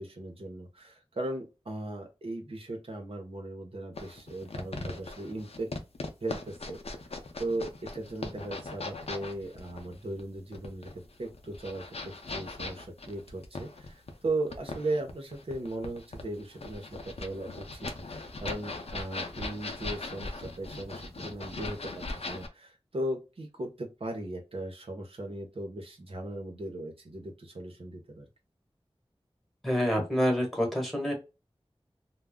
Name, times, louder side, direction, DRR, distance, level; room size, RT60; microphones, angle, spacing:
voice 1, 0.0-5.7 6.2-6.8 7.4-28.3, right 1 dB, 65° right, 2 dB, 0.7 m, -37 dB
sound 1, 4.0-22.5, left 2 dB, 80° left, 0.5 m, -40 dB
voice 2, 29.6-31.1, equal, ahead, 1 dB, 1.2 m, -27 dB
2.2 x 2.0 x 3.4 m, 0.27 s
wide cardioid pair, 50°, 10 cm